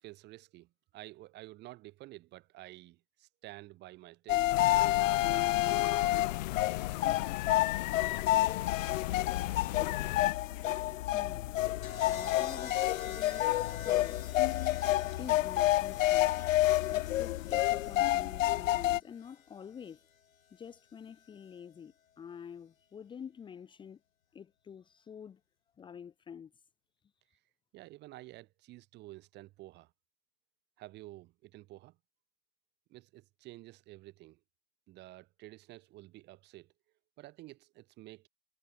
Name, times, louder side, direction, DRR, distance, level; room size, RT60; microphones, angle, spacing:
voice 1, 0.0-4.6 27.7-29.9 30.8-32.0 32.9-34.4 34.9-36.7 37.2-38.3, right 17 dB, 25° right, 4.8 m, -51 dB
sound 1, 4.3-19.0, left 15 dB, 70° left, 0.5 m, -29 dB
sound 2, 4.5-10.3, left 19 dB, 35° left, 0.7 m, -37 dB
voice 2, 11.1-11.8 12.1-13.5 13.8-14.2 15.2-16.4 16.8-20.1 20.5-24.0 24.3-25.4 25.8-26.5, left 7 dB, 10° left, 2.2 m, -48 dB
sound 3, 11.8-20.0 21.2-21.6, left 8 dB, 90° left, 5.7 m, -46 dB
hypercardioid pair, 155°, 40 cm